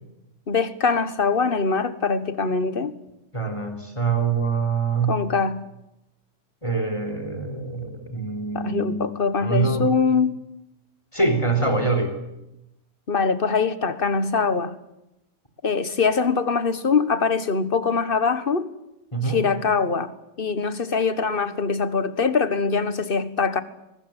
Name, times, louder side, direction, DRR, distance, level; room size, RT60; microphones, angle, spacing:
voice 1, 0.5-2.9 5.1-5.6 8.5-10.4 13.1-14.8 15.6-18.7 19.2-23.6, left 5 dB, 45° left, 1.7 m, -23 dB
voice 2, 3.3-5.2 6.6-9.9 11.1-12.2 19.1-19.5, right 4 dB, 25° left, 3.6 m, -25 dB
24.0 x 20.5 x 9.1 m
omnidirectional pair, 1.3 m